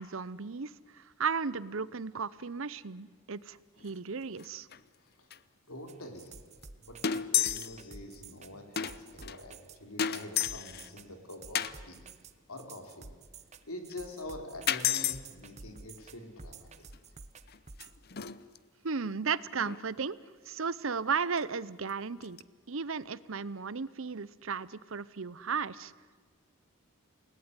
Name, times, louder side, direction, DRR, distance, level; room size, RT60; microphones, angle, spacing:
voice 1, 0.0-3.6 3.8-4.7 18.8-20.2 20.5-22.4 22.7-25.9, right 5 dB, 70° right, 19 dB, 0.8 m, -35 dB
sound 1, 3.8-4.0 4.3-4.5 4.7-4.8 5.3-5.4 6.3-6.4 6.6-6.7 7.0-7.8 8.1-8.2 8.8-9.4 10.0-10.9 11.5-11.8 13.9-14.0 14.7-15.2 16.9-17.0 17.5-18.6 19.6-19.8 21.4-21.5 21.9-22.0 22.2-22.4, left 9 dB, 45° left, 0.7 m, -32 dB
voice 2, 5.7-6.4 6.8-12.1 12.5-13.1 13.7-16.9, left 1 dB, 90° left, 5 dB, 4.0 m, -45 dB
sound 2, 5.9-18.0, right 4 dB, 30° right, 1.0 m, -50 dB
29.0 x 19.0 x 9.8 m, 1.5 s
head